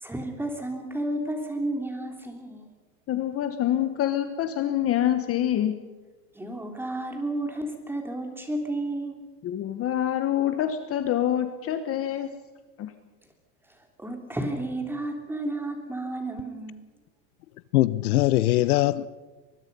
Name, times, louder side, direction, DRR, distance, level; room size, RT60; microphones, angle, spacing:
voice 1, 0.0-2.7 6.3-9.2 14.0-16.8, right 1 dB, 5° right, 3.2 m, -32 dB
voice 2, 3.1-5.7 9.4-12.3 12.8-12.9, left 11 dB, 30° left, 1.3 m, -26 dB
voice 3, 17.7-19.1, left 16 dB, 80° left, 0.9 m, -21 dB
24.0 x 21.0 x 5.5 m
supercardioid pair, 135°, 44 cm